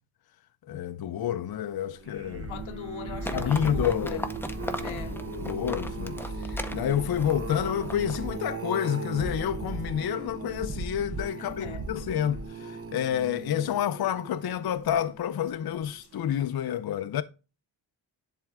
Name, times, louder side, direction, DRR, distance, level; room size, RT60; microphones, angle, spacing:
voice 1, 0.7-2.5 3.3-4.2 4.6-17.2, left 10 dB, 55° left, 0.5 m, -29 dB
sound 1, 1.9-15.3 15.8-16.1 16.4-16.5, right 4 dB, 30° right, 0.7 m, -37 dB
voice 2, 2.4-4.3 4.8-5.3 11.4-11.9, left 8 dB, 90° left, 0.9 m, -40 dB
Livestock farm animals working animals, 3.2-8.4, left 1 dB, 5° left, 0.6 m, -37 dB
10.5 x 3.8 x 3.5 m
wide cardioid pair, 130°, 47 cm